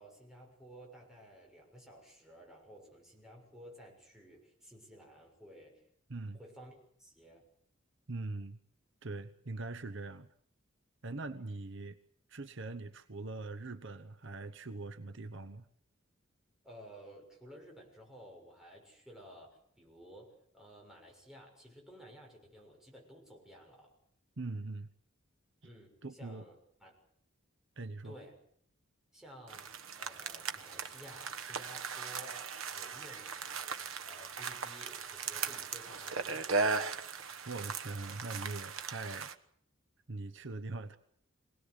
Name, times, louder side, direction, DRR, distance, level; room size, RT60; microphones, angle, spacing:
voice 1, 0.0-5.8 6.3-7.4 16.6-23.9 25.6-27.0 28.0-28.4 29.1-29.7 30.0-37.0, equal, ahead, -1 dB, 6.8 m, -54 dB
voice 2, 8.1-8.6 9.0-10.3 11.0-12.0 12.3-15.7 24.4-24.9 26.0-26.5 27.8-28.1 37.4-39.3 40.1-41.0, right 3 dB, 65° right, 11 dB, 1.1 m, -42 dB
sound 1, 29.5-39.3, right 4 dB, 85° right, 1.3 m, -38 dB
24.5 x 18.5 x 8.2 m, 0.64 s
head